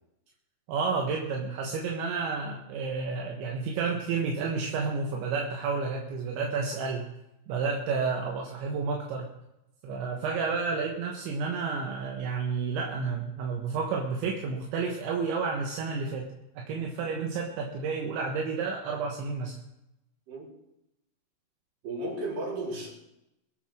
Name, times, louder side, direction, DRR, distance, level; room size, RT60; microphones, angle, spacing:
voice 1, 0.7-7.1 7.5-9.3 9.8-19.6, right 4 dB, 75° right, 0 dB, 3.7 m, -31 dB
voice 2, 21.8-22.9, right 1 dB, 50° right, -3 dB, 5.4 m, -34 dB
23.0 x 8.0 x 6.3 m, 0.88 s
omnidirectional pair, 5.3 m